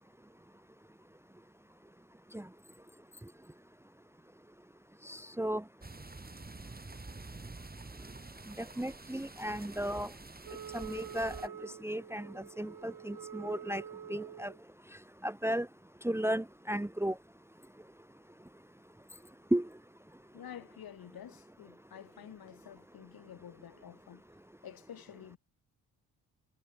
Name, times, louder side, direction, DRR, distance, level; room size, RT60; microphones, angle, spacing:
voice 1, 5.0-5.6 8.6-10.1 10.7-13.8 14.1-14.5 15.2-15.7 16.0-17.2 19.5-19.7, right 1 dB, 5° right, 1.2 m, -34 dB
sound 1, 5.8-11.5, right 3 dB, 20° right, 7.6 m, -48 dB
Wind instrument woodwind instrument, 10.4-14.6, right 9 dB, 55° right, 3.1 m, -47 dB
voice 2, 20.3-24.2 24.6-25.4, left 10 dB, 60° left, 4.7 m, -50 dB
hypercardioid pair, 50°, 40 cm